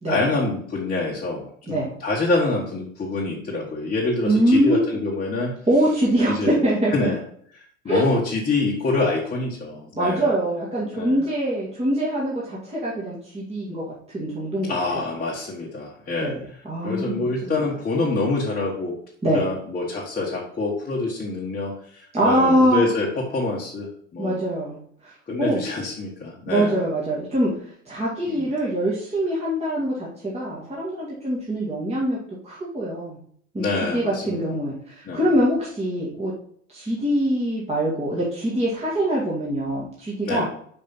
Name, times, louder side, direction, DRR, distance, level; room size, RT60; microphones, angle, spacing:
voice 1, 0.1-5.5 6.3-6.6 6.9-7.2 7.8-10.3 10.9-11.2 14.7-16.4 16.8-19.0 19.2-24.4 25.3-26.8 28.3-28.5 33.6-34.4 35.0-35.2 40.3-40.4, left 3 dB, 20° left, -3 dB, 1.4 m, -26 dB
voice 2, 4.2-5.0 5.7-7.1 7.9-8.2 10.0-15.0 16.2-17.7 19.2-19.5 22.1-22.9 24.2-25.6 26.5-27.5 27.9-32.2 32.4-33.2 33.5-33.6 33.9-36.3 36.7-40.4, right 1 dB, 15° right, -6 dB, 1.9 m, -23 dB
5.4 x 5.1 x 4.1 m, 0.62 s
hypercardioid pair, 75°, 40 cm